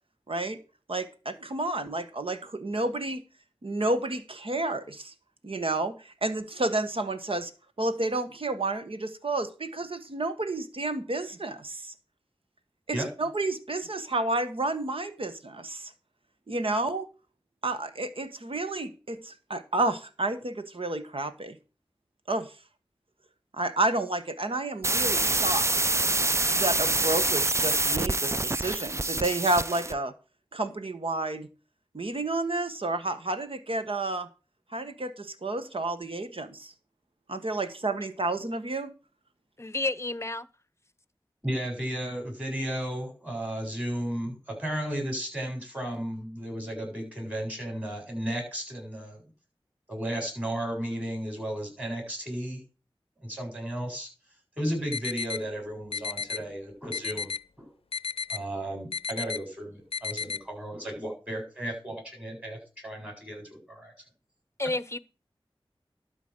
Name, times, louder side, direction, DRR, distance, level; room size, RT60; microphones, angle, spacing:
voice 1, 0.3-0.6 0.9-3.2 3.6-5.1 5.4-7.5 7.8-11.9 12.9-15.9 16.5-17.1 17.6-21.6 22.3-22.5 23.5-25.9 26.5-30.1 30.5-31.5 31.9-34.3 34.7-36.7 37.3-38.9, right 2 dB, 70° right, 1.4 m, -30 dB
sound 1, 24.8-30.0, right 2 dB, 30° right, 0.5 m, -26 dB
voice 2, 39.6-40.5 64.6-65.0, left 2 dB, 30° left, 0.7 m, -30 dB
voice 3, 41.4-49.2 49.9-52.6 53.2-54.1 54.6-57.7 58.3-63.9, right 1 dB, 15° right, 7.9 m, -34 dB
sound 2, 54.9-55.4 55.9-56.4 56.9-57.4 57.9-58.4 58.9-59.4 59.9-60.4, left 5 dB, 75° left, 0.5 m, -32 dB
12.5 x 5.1 x 8.1 m
wide cardioid pair, 40°, 10 cm